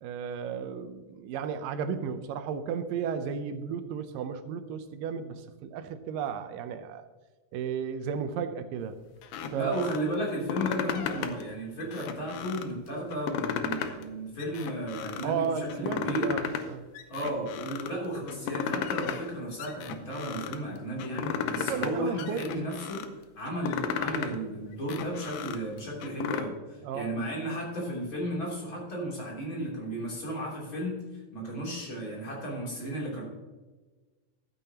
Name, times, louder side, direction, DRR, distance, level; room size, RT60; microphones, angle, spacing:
voice 1, 0.0-7.0 7.5-9.0 9.5-9.9 15.2-16.9 21.7-22.4 26.8-27.1, right 7 dB, 80° right, 9 dB, 2.3 m, -34 dB
sound 1, 9.2-10.0 10.4-11.4 11.8-12.7 13.1-14.1 14.4-15.3 15.7-16.6 16.9-17.9 18.3-19.3 19.6-20.6 21.0-21.9 22.2-23.1 23.5-24.3 24.7-26.4, left 7 dB, 75° left, 2.2 m, -34 dB
voice 2, 9.5-16.3 17.1-23.0 23.4-33.2, right 1 dB, 35° left, -4 dB, 3.7 m, -34 dB
14.0 x 8.9 x 2.9 m, 1.3 s
omnidirectional pair, 3.9 m